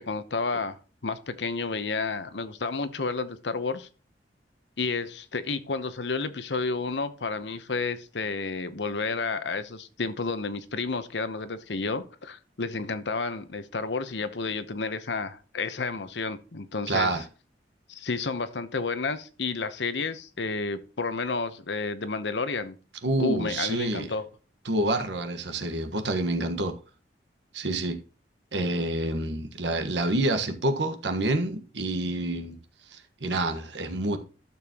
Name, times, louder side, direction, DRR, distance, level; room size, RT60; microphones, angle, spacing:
voice 1, 0.0-3.9 4.8-17.2 17.9-22.8 23.2-24.2, left 4 dB, 75° left, 0.9 m, -31 dB
voice 2, 16.9-17.2 23.0-24.1 24.6-26.7 27.5-28.0 28.5-32.6 32.9-34.2, right 2 dB, 80° right, 1.4 m, -28 dB
12.0 x 7.0 x 2.9 m
head